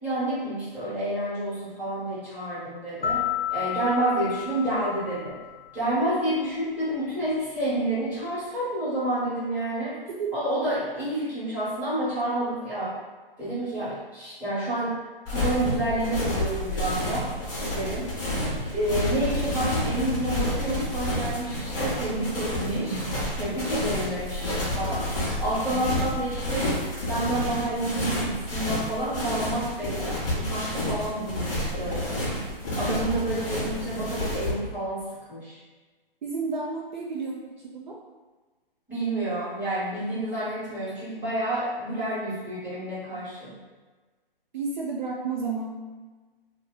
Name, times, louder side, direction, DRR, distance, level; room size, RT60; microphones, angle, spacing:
voice 1, 0.0-3.2 3.5-5.4 5.7-9.9 10.3-12.9 13.4-14.9 15.3-17.3 17.7-18.1 18.7-23.0 23.3-26.7 27.1-32.2 32.7-35.0 35.3-35.6 38.9-43.5, right 1 dB, 5° right, -13 dB, 1.1 m, -29 dB
sound 1, 3.0-5.8, left 11 dB, 80° left, 0.7 m, -31 dB
sound 2, 15.3-34.5, left 1 dB, 15° left, 0.6 m, -29 dB
voice 2, 36.2-38.0 44.5-45.9, right 4 dB, 50° right, -3 dB, 0.5 m, -32 dB
2.9 x 2.2 x 3.6 m, 1.3 s
hypercardioid pair, 145°, 29 cm